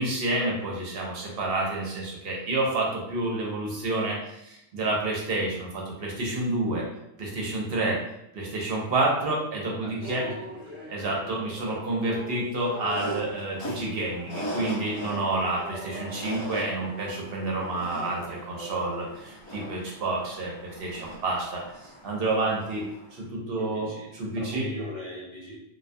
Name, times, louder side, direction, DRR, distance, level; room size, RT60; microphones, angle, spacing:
voice 1, 0.0-6.8 7.2-8.0 8.3-10.3 10.9-22.8 23.1-24.7, right 2 dB, 65° right, -2 dB, 0.8 m, -29 dB
voice 2, 9.8-11.2 15.6-16.2 23.6-24.1 24.4-25.6, left 1 dB, 55° left, -4 dB, 0.8 m, -41 dB
sound 1, 10.0-20.4 20.9-21.1 21.7-22.0 22.4-22.7, right 1 dB, 15° right, 0.6 m, -43 dB
sound 2, 12.9-23.2, right 1 dB, 35° left, 0.5 m, -40 dB
2.2 x 2.2 x 2.5 m, 0.82 s
omnidirectional pair, 1.1 m